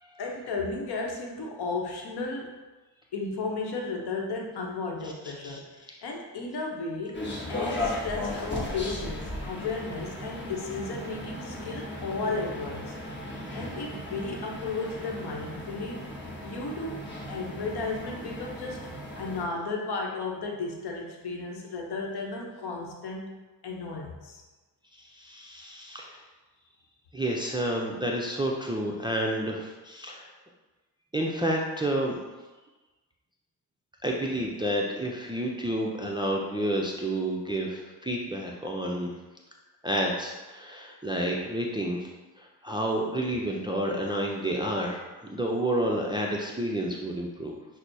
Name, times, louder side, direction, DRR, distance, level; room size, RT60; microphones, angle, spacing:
voice 1, 0.2-2.5 3.1-7.2 7.5-12.9 13.5-16.1 16.4-18.9 19.2-23.4 23.6-24.4, left 3 dB, 60° left, 0 dB, 0.8 m, -34 dB
sound 1, 7.1-19.4, left 1 dB, 25° left, 1.0 m, -36 dB
voice 2, 25.0-26.2 27.1-30.3 31.1-32.2 34.0-39.1 39.8-42.1 42.4-47.5, right 1 dB, 10° right, -1 dB, 0.4 m, -30 dB
5.9 x 2.0 x 2.6 m, 1.2 s
cardioid pair, 65°, 43 cm